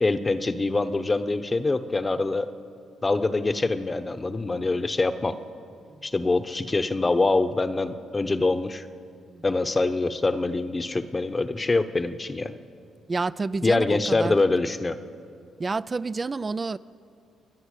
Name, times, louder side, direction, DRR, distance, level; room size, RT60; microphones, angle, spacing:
voice 1, 0.0-2.5 3.0-5.3 6.0-8.9 9.4-12.5 13.6-15.0, left 3 dB, 25° left, 0.9 m, -24 dB
voice 2, 13.1-14.4 15.6-16.8, right 3 dB, 30° right, 0.4 m, -29 dB
29.5 x 10.5 x 8.3 m
cardioid pair, 90°, 0 cm